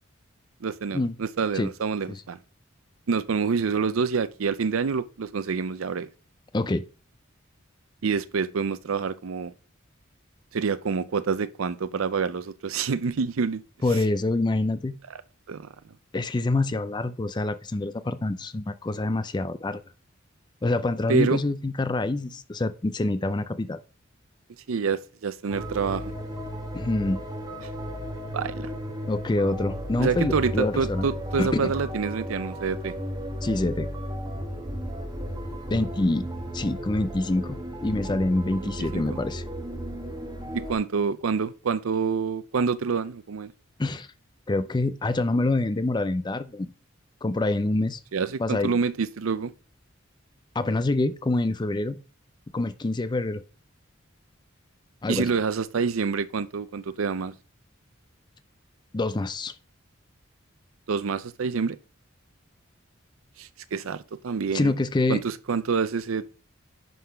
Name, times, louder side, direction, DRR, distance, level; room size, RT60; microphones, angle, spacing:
voice 1, 0.6-2.4 3.1-6.1 8.0-9.5 10.5-13.6 15.1-15.2 15.5-15.7 21.1-21.4 24.7-26.1 28.3-28.7 30.0-32.9 38.6-39.2 40.5-43.5 48.1-49.5 55.1-57.3 60.9-61.8 63.4-64.7 65.1-66.3, right 5 dB, 85° right, 0.5 m, -27 dB
voice 2, 6.5-6.8 13.8-14.9 16.1-19.8 20.6-23.8 26.7-27.2 29.1-31.1 31.4-31.7 33.4-33.9 35.7-36.3 36.5-39.4 43.8-44.1 44.5-46.7 47.2-48.0 48.4-48.7 50.5-52.0 52.5-53.4 55.0-55.3 58.9-59.5 64.5-65.2, left 2 dB, 20° left, 0.4 m, -26 dB
sound 1, 25.5-40.7, equal, 20° right, 1.5 m, -34 dB
10.0 x 3.9 x 5.6 m
head